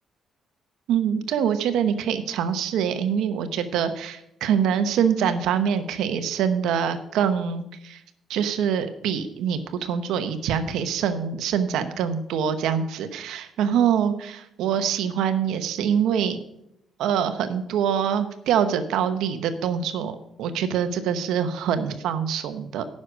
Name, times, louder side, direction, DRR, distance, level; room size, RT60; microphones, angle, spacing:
voice 1, 0.9-8.0 8.3-16.4 17.0-22.9, right 8 dB, 85° right, 10 dB, 0.9 m, -24 dB
9.9 x 6.3 x 6.2 m, 0.79 s
cardioid pair, 90°, 0 cm